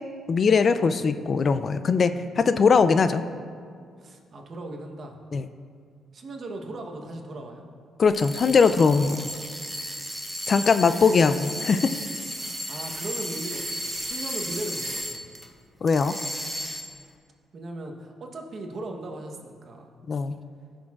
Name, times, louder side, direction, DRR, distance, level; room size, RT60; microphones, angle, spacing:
voice 1, 0.3-3.2 5.3-5.5 8.0-9.3 10.5-11.9 15.8-16.2 20.1-20.4, left 5 dB, 45° left, 11 dB, 0.3 m, -21 dB
voice 2, 4.0-5.2 6.1-7.6 10.7-11.9 12.4-15.2 17.5-19.9, right 2 dB, 50° right, 2 dB, 1.0 m, -38 dB
sound 1, 8.1-15.5 15.9-17.0, equal, 5° right, 0.9 m, -34 dB
14.0 x 6.3 x 2.4 m, 2.1 s
cardioid pair, 90°, 0 cm